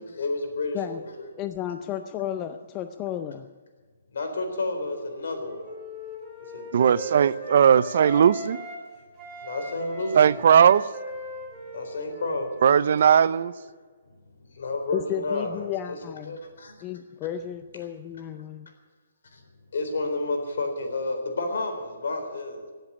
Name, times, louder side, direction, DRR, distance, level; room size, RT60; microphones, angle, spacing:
voice 1, 0.0-1.3 4.1-5.7 6.5-6.7 6.9-7.1 9.4-10.4 11.7-12.5 14.5-16.0 16.2-16.8 19.3-19.4 19.7-22.7, left 2 dB, 65° left, 3.9 m, -31 dB
voice 2, 1.4-3.5 14.9-16.4 16.8-18.7, left 10 dB, 20° left, 0.5 m, -33 dB
Wind instrument woodwind instrument, 4.5-8.9 9.2-13.7, right 2 dB, 5° right, 3.7 m, -39 dB
voice 3, 6.7-8.6 10.2-10.9 12.6-13.5, right 8 dB, 50° right, 0.5 m, -18 dB
17.0 x 8.0 x 9.9 m
hypercardioid pair, 165°, 0 cm